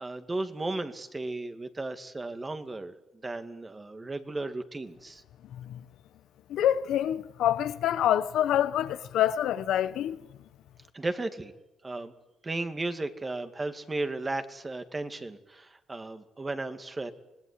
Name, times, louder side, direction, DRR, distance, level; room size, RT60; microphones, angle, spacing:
voice 1, 0.0-2.9 3.2-5.2 10.9-11.5 11.8-12.1 12.4-17.1, right 2 dB, 25° right, 2.3 m, -35 dB
voice 2, 6.5-10.2, left 11 dB, 80° left, 1.2 m, -26 dB
26.0 x 19.5 x 9.8 m
cardioid pair, 90°, 0 cm